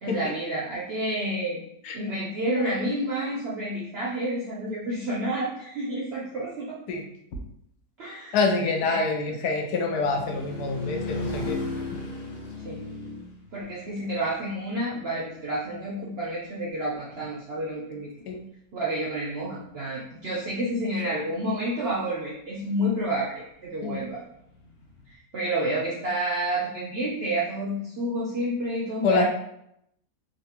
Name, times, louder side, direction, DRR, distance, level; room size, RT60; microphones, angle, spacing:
voice 1, 0.0-1.6 1.9-6.8 8.0-8.4 8.8-9.3 12.6-12.8 13.5-18.1 18.7-24.2 25.1-29.2, right 1 dB, 65° right, -5 dB, 0.6 m, -29 dB
voice 2, 8.3-11.6 18.3-18.4 23.8-24.0 29.0-29.2, left 4 dB, 80° left, 2 dB, 1.1 m, -26 dB
sound 1, 10.0-14.9 24.4-25.1, left 2 dB, 55° left, 0.7 m, -35 dB
3.2 x 2.6 x 2.8 m, 0.76 s
omnidirectional pair, 1.7 m